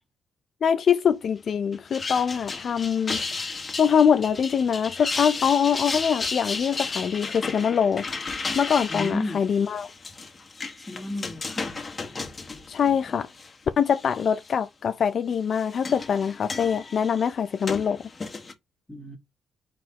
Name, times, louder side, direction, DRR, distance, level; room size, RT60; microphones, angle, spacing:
voice 1, 0.6-3.2 3.8-8.1 8.5-9.9 12.7-13.3 13.8-18.0, left 7 dB, 55° left, 0.4 m, -23 dB
sound 1, 1.7-13.5 13.9-14.5 15.3-18.5, left 4 dB, 30° left, 1.3 m, -34 dB
voice 2, 8.9-9.4 10.9-11.8 18.9-19.2, left 2 dB, 10° left, 1.5 m, -32 dB
4.5 x 4.0 x 2.9 m
cardioid pair, 90°, 0 cm